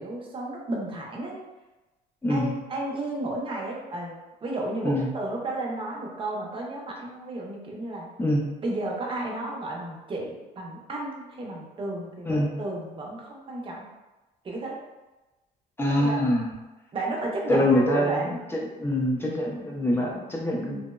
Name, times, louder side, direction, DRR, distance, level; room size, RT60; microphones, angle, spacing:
voice 1, 0.0-1.4 2.3-8.1 8.6-13.9 14.4-14.8 15.9-16.2 16.9-18.4, right 2 dB, 30° right, -1 dB, 0.6 m, -33 dB
voice 2, 2.2-2.6 4.8-5.1 8.2-8.4 12.3-12.5 15.8-16.5 17.5-18.4 18.8-20.8, left 1 dB, 15° left, -2 dB, 0.5 m, -24 dB
2.8 x 2.0 x 2.3 m, 1.1 s
cardioid pair, 110°, 17 cm